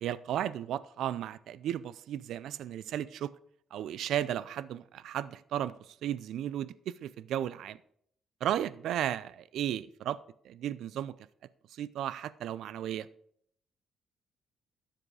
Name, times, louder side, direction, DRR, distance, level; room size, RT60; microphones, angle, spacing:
voice 1, 0.0-3.3 3.7-7.8 8.4-10.2 10.4-11.1 11.7-13.1, right 11 dB, 70° right, 0.4 m, -34 dB
12.5 x 7.6 x 4.8 m
cardioid pair, 125°, 0 cm